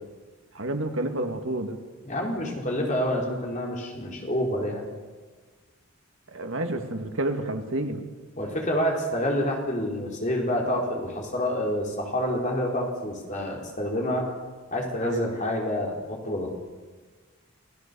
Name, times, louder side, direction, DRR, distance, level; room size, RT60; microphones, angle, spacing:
voice 1, 0.5-1.8 6.3-8.1 15.0-15.3, right 1 dB, 65° right, 5 dB, 2.3 m, -29 dB
voice 2, 2.0-4.8 8.4-14.3 14.7-16.5, left 1 dB, 35° left, 0 dB, 4.5 m, -28 dB
28.5 x 17.0 x 7.1 m, 1.4 s
head